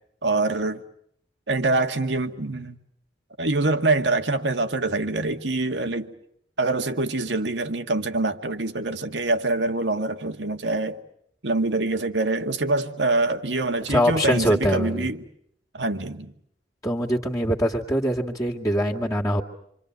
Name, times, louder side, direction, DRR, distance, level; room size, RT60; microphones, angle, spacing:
voice 1, 0.2-0.8 1.5-2.8 3.4-6.1 6.6-11.0 11.4-15.2 15.7-16.3, right 2 dB, 80° right, 1.9 m, -25 dB
voice 2, 13.9-15.1 16.8-19.4, equal, 20° left, 2.2 m, -23 dB
27.5 x 26.5 x 8.1 m
head